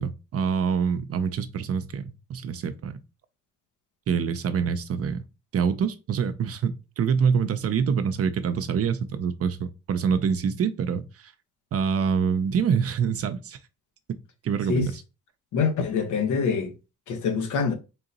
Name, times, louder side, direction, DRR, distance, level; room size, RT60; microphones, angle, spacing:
voice 1, 0.0-3.0 4.1-5.2 5.5-11.0 11.7-13.6 14.4-14.9, right 6 dB, 50° right, 0.6 m, -25 dB
voice 2, 15.5-16.7 17.1-17.7, left 5 dB, 80° left, 1.1 m, -25 dB
3.8 x 2.8 x 3.9 m
cardioid pair, 90°, 30 cm